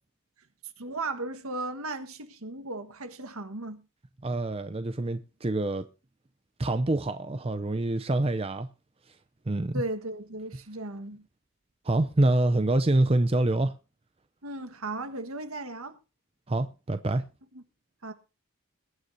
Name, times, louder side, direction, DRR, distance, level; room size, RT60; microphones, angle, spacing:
voice 1, 0.8-3.8 9.7-11.3 14.4-16.0 17.5-17.6 18.0-18.1, right 2 dB, 75° right, 1.6 m, -36 dB
voice 2, 4.2-5.9 6.6-8.7 9.5-9.8 11.8-13.7 16.5-17.2, right 2 dB, 25° right, 0.6 m, -26 dB
22.0 x 9.7 x 2.7 m
head